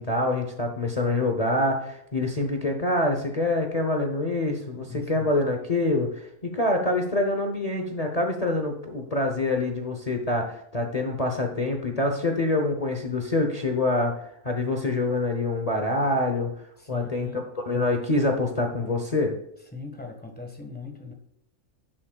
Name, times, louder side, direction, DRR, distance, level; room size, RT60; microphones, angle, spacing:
voice 1, 0.0-14.2 14.4-16.5 16.9-19.3, left 2 dB, 30° left, 2 dB, 0.8 m, -26 dB
voice 2, 4.7-5.3 16.8-17.4 19.7-21.1, left 5 dB, 5° left, 2 dB, 1.4 m, -39 dB
11.5 x 7.5 x 2.4 m, 0.76 s
omnidirectional pair, 1.6 m